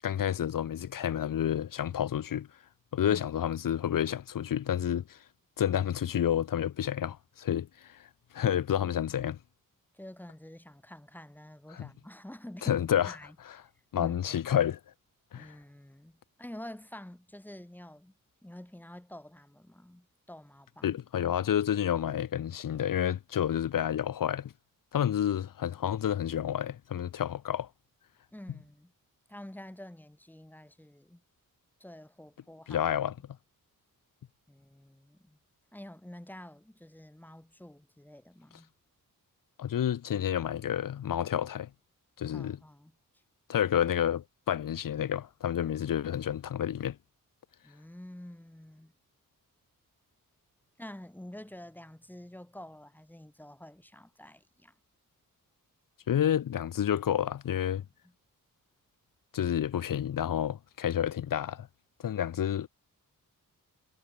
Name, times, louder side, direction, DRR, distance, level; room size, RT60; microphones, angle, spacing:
voice 1, 0.0-2.5 2.9-5.2 5.6-8.0 8.3-9.4 11.7-11.9 12.6-13.1 13.9-14.8 15.3-15.5 20.8-24.5 24.9-27.7 32.7-33.1 39.6-41.7 42.2-42.6 43.5-47.0 56.1-57.8 59.3-61.7 62.0-62.7, left 10 dB, 70° left, 1.2 m, -29 dB
voice 2, 9.9-13.6 13.9-14.4 15.3-18.1 18.4-21.0 28.3-28.9 29.3-31.2 31.8-32.9 34.5-35.4 35.7-38.7 42.3-42.9 47.6-48.9 50.8-54.7 58.0-58.1, left 1 dB, 5° left, 2.3 m, -48 dB
wide cardioid pair, 120°, 34 cm